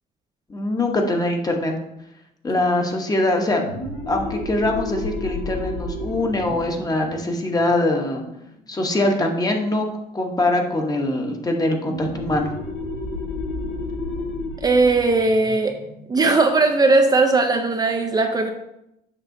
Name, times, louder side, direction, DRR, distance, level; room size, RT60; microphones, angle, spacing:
voice 1, 0.5-1.7 2.4-3.6 4.1-8.2 8.7-9.9 10.1-12.5, left 1 dB, 20° left, 3 dB, 1.0 m, -22 dB
sound 1, 3.5-8.8 11.8-17.1, left 2 dB, 85° left, 1.4 m, -32 dB
voice 2, 14.6-15.8 16.1-18.5, right 3 dB, 25° right, 4 dB, 0.5 m, -18 dB
7.3 x 5.4 x 2.7 m, 0.85 s
cardioid pair, 110°, 17 cm